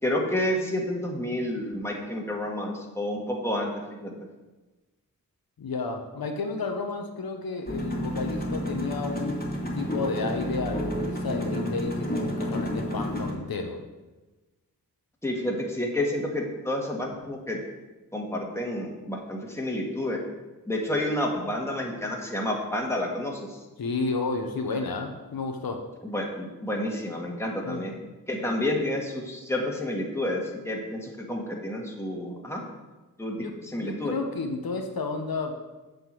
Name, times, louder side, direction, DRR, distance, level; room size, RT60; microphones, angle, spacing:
voice 1, 0.0-4.1 15.2-17.6 18.1-20.2 20.7-23.6 26.0-27.9 28.3-32.6 33.2-33.5 33.7-34.1, left 1 dB, 10° left, -1 dB, 1.9 m, -30 dB
voice 2, 5.6-9.4 9.7-13.8 23.8-25.8 27.6-27.9 33.4-35.6, left 3 dB, 90° left, 4 dB, 1.1 m, -31 dB
sound 1, 7.7-13.3, equal, 25° left, 1.9 m, -30 dB
8.2 x 5.2 x 7.6 m, 1.2 s
wide cardioid pair, 90°, 35 cm